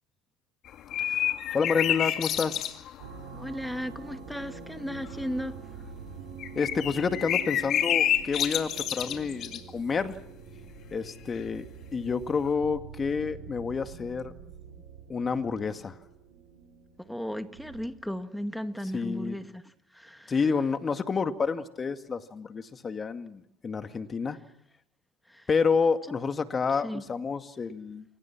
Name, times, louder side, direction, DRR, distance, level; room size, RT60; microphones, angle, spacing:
sound 1, 0.7-3.1 3.4-3.5 3.9-4.0 5.0-5.4 6.4-9.6 11.3-11.4, left 11 dB, 55° left, 2.1 m, -29 dB
voice 1, 1.1-2.7 6.6-10.1 10.9-11.7 11.9-14.3 15.1-16.0 18.9-19.4 20.3-24.4 25.5-28.1, left 5 dB, 30° left, 2.1 m, -29 dB
sound 2, 3.0-18.0, right 6 dB, 85° right, 5.9 m, -46 dB
voice 2, 3.3-5.6 17.0-19.6 19.9-20.3 25.3-25.5 26.7-27.0, equal, 5° left, 1.9 m, -35 dB
28.5 x 23.0 x 6.1 m
hypercardioid pair, 80°, 0 cm